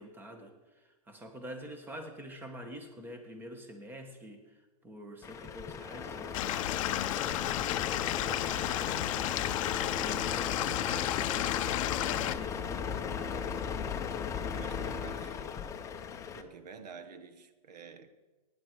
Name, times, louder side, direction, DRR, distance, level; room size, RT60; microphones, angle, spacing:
voice 1, 0.0-9.2 9.4-13.7, equal, 10° right, 1.4 m, -47 dB
Truck, 5.2-16.4, left 7 dB, 15° left, 0.7 m, -37 dB
Stream / Liquid, 6.3-12.3, left 14 dB, 55° left, 0.5 m, -32 dB
voice 2, 14.6-15.5 16.3-18.1, right 6 dB, 85° right, 1.2 m, -49 dB
16.5 x 9.8 x 4.7 m
hypercardioid pair, 145°, 20 cm